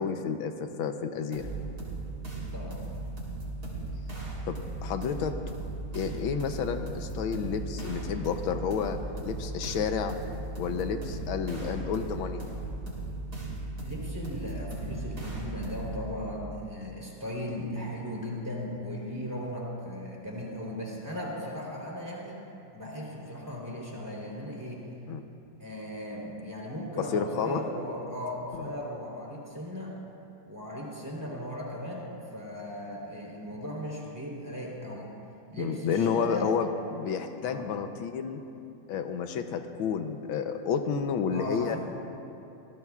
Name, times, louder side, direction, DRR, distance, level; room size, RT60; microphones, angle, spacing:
voice 1, 0.0-1.5 4.5-4.6 4.8-5.4 5.9-9.0 9.2-10.1 10.6-12.4 25.1-25.2 27.0-27.6 28.6-28.7 35.6-38.4 38.9-41.8, left 6 dB, 85° left, 7 dB, 1.6 m, -30 dB
sound 1, 1.3-16.1, right 2 dB, 50° right, 4.1 m, -37 dB
voice 2, 13.8-22.4 22.7-24.9 25.6-30.0 30.5-35.1 35.5-36.6 37.4-37.7 41.3-41.8, equal, 10° right, -4 dB, 3.4 m, -37 dB
25.5 x 18.5 x 2.4 m, 2.8 s
omnidirectional pair, 2.2 m